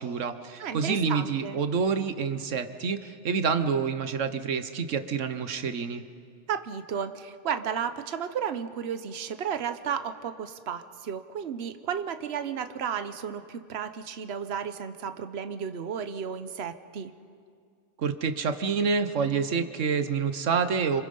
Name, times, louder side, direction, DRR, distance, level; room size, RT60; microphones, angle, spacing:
voice 1, 0.0-6.0 18.0-21.0, right 5 dB, 80° right, 10 dB, 1.4 m, -27 dB
voice 2, 0.6-1.6 6.5-17.1, right 7 dB, 60° right, 9 dB, 1.2 m, -33 dB
27.0 x 26.0 x 5.5 m, 2.2 s
omnidirectional pair, 1.3 m